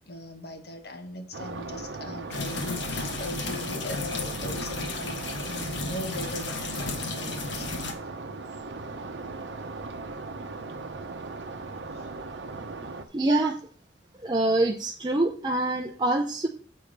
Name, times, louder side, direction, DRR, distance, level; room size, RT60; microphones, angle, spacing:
voice 1, 0.0-8.0 11.9-12.1, left 1 dB, 60° left, 6 dB, 1.1 m, -39 dB
sound 1, 1.3-13.0, right 3 dB, 75° right, 0.8 m, -38 dB
sound 2, 2.3-7.9, left 3 dB, 80° left, 1.2 m, -34 dB
voice 2, 13.1-13.6 14.2-16.5, right 2 dB, 25° right, 2 dB, 0.6 m, -25 dB
7.8 x 4.9 x 5.2 m, 0.43 s
head